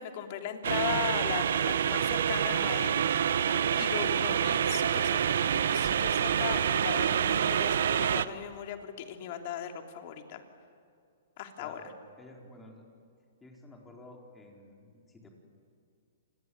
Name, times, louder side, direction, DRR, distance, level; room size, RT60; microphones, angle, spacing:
voice 1, 0.0-3.2 3.5-5.2 5.5-10.4 11.4-11.8, left 9 dB, 45° left, 5 dB, 3.2 m, -38 dB
sound 1, 0.6-8.2, right 8 dB, 70° right, 1.0 m, -27 dB
sound 2, 1.6-7.5, right 7 dB, 40° right, 4.0 m, -50 dB
voice 2, 11.6-12.9 13.4-15.3, left 1 dB, 10° left, 1 dB, 4.4 m, -51 dB
28.5 x 21.5 x 9.5 m, 2.4 s
hypercardioid pair, 150°, 0 cm